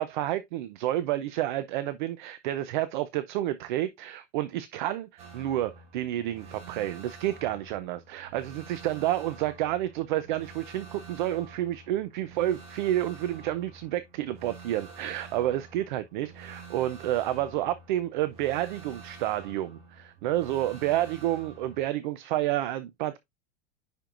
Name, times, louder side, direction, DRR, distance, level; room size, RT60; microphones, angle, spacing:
voice 1, 0.0-23.2, right 13 dB, 45° right, 0.5 m, -30 dB
sound 1, 5.2-21.8, right 4 dB, 20° right, 1.4 m, -48 dB
10.5 x 4.5 x 2.4 m
supercardioid pair, 180°, 34 cm